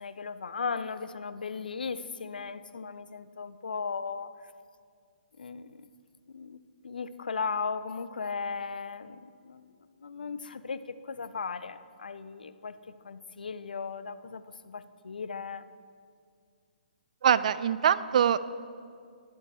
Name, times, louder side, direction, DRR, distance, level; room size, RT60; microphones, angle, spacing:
voice 1, 0.0-4.5 5.4-5.9 6.3-12.8 13.0-15.6, left 5 dB, 65° left, 13 dB, 0.5 m, -37 dB
voice 2, 17.2-18.4, right 8 dB, 50° right, 15 dB, 0.4 m, -23 dB
11.5 x 10.5 x 3.4 m, 2.2 s
figure-of-eight pair, 130°, 5 cm